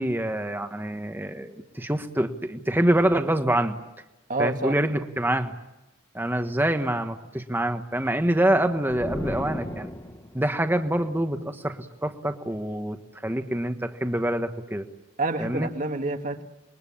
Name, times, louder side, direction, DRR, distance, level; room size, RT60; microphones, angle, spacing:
voice 1, 0.0-3.8 4.4-5.5 6.1-9.9 10.3-14.9 15.4-15.7, right 1 dB, 10° right, 7 dB, 1.4 m, -26 dB
voice 2, 4.3-4.8 15.2-16.4, right 2 dB, 40° right, 5 dB, 1.8 m, -28 dB
sound 1, 8.9-10.5, left 1 dB, 15° left, 1.4 m, -34 dB
27.5 x 23.0 x 8.7 m, 0.96 s
head